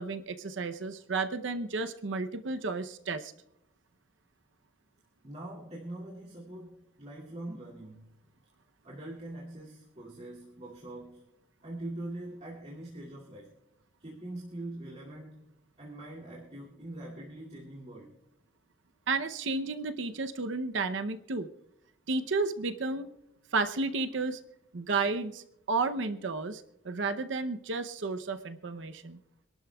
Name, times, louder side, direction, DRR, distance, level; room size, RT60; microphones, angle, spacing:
voice 1, 0.0-3.3 19.1-21.5 22.1-23.1 23.5-24.4 24.7-29.2, right 3 dB, 70° right, 8 dB, 0.7 m, -32 dB
voice 2, 5.2-8.1 8.8-11.2 11.6-13.5 14.0-15.4 15.8-18.1, right 1 dB, 35° right, -4 dB, 2.4 m, -43 dB
26.0 x 12.0 x 2.3 m, 0.85 s
head